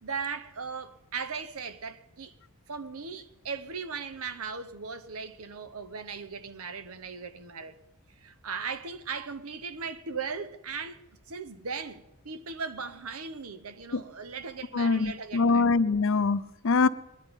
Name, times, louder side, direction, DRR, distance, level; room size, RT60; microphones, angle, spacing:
voice 1, 0.0-2.4 2.7-7.8 8.2-15.8, right 5 dB, 80° right, 0.9 m, -38 dB
voice 2, 14.7-16.9, left 4 dB, 60° left, 0.5 m, -24 dB
21.0 x 10.0 x 5.3 m
head